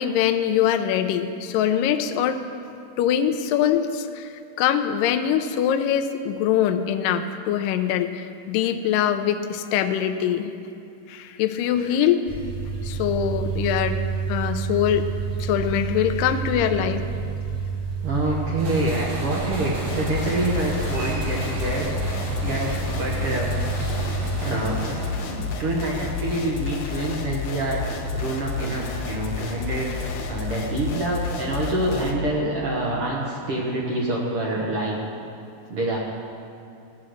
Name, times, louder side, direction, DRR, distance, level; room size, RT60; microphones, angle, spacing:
voice 1, 0.0-2.4 3.0-4.3 4.6-10.5 11.1-12.3 12.8-14.0 14.3-15.1 15.4-17.0, left 9 dB, 90° left, 6 dB, 2.0 m, -23 dB
sound 1, 12.2-24.3, right 5 dB, 25° right, 1.8 m, -29 dB
voice 2, 18.0-21.9 22.4-23.5 24.4-25.0 25.3-27.8 28.1-29.9 30.2-35.0 35.7-36.0, right 1 dB, 70° right, -2 dB, 1.3 m, -26 dB
sound 2, 18.6-25.7, right 1 dB, 90° right, 4.9 m, -35 dB
sound 3, 19.9-32.1, left 5 dB, 70° left, 1.7 m, -31 dB
17.0 x 8.5 x 6.3 m, 2.8 s
omnidirectional pair, 4.6 m